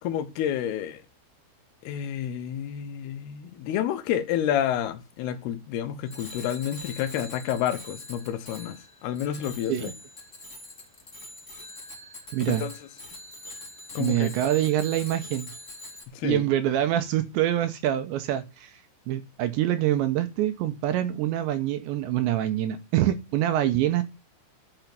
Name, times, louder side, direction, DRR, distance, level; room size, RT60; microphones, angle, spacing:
voice 1, 0.0-1.0 1.8-9.9 12.5-12.7 13.9-14.3 16.1-16.5, left 10 dB, 70° left, 2.6 m, -29 dB
Bicycle bell, 6.1-16.0, left 2 dB, 35° left, 1.2 m, -43 dB
voice 2, 12.3-12.7 14.0-15.5 16.2-24.0, right 12 dB, 80° right, 2.8 m, -25 dB
12.0 x 5.9 x 6.7 m
omnidirectional pair, 5.7 m